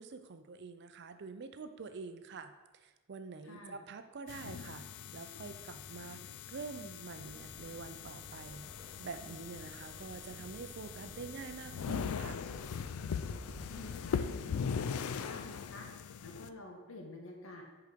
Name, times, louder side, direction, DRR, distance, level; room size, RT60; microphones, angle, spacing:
voice 1, 0.0-6.2 6.5-8.7 9.0-12.4, right 4 dB, 50° right, 9 dB, 0.5 m, -46 dB
voice 2, 3.4-3.8 13.3-13.4 13.7-15.9 16.2-17.6, left 1 dB, 65° left, 1 dB, 1.3 m, -49 dB
sound 1, 4.3-16.5, left 6 dB, 85° left, 0.4 m, -41 dB
sound 2, 7.2-14.3, right 1 dB, 15° right, 0.7 m, -54 dB
6.6 x 4.9 x 5.1 m, 1.2 s
head